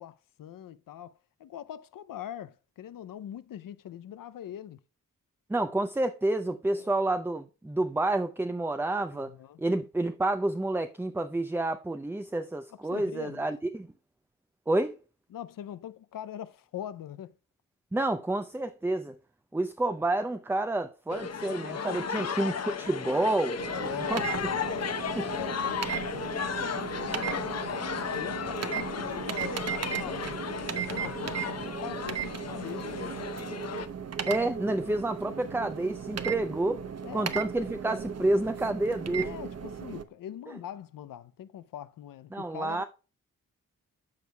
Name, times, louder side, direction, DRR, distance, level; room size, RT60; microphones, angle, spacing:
voice 1, 0.0-4.8 6.7-6.9 9.1-9.6 12.7-13.5 15.3-17.3 21.9-22.3 23.7-27.5 28.1-33.2 37.0-37.3 39.2-42.8, left 10 dB, 80° left, 0.6 m, -42 dB
voice 2, 5.5-9.3 9.6-13.9 14.7-14.9 17.9-19.2 19.5-23.6 23.9-24.2 25.1-25.3 34.3-36.8 37.1-39.3 42.3-42.8, right 2 dB, 5° right, 0.5 m, -29 dB
sound 1, 21.1-33.9, left 6 dB, 50° left, 0.8 m, -34 dB
sound 2, 23.6-40.0, right 8 dB, 50° right, 0.8 m, -36 dB
13.5 x 4.6 x 2.2 m
cardioid pair, 90°, 33 cm